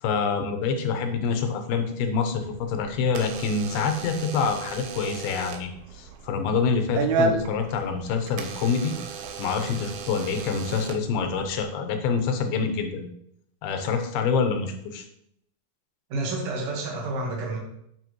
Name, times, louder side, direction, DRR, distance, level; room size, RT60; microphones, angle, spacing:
voice 1, 0.0-8.9 9.4-13.1 13.6-15.0, left 5 dB, 85° left, 6 dB, 2.8 m, -26 dB
Door / Alarm, 2.4-11.6, right 4 dB, 90° right, 2.7 m, -33 dB
voice 2, 16.1-17.6, right 2 dB, 50° right, -2 dB, 1.9 m, -29 dB
9.3 x 5.9 x 3.1 m, 0.74 s
omnidirectional pair, 4.4 m